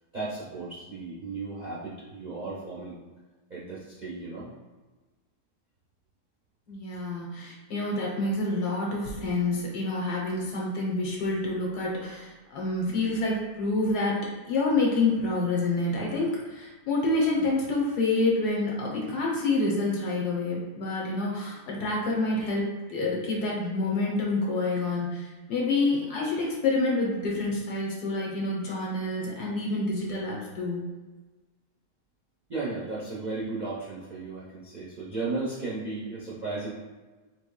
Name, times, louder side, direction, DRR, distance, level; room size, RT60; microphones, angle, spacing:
voice 1, 0.1-3.0 3.5-4.5 32.5-36.7, right 3 dB, 50° right, -8 dB, 0.5 m, -35 dB
voice 2, 6.7-14.2 14.5-30.8, left 2 dB, 75° left, -3 dB, 1.4 m, -28 dB
4.2 x 3.1 x 2.2 m, 1.3 s
omnidirectional pair, 1.7 m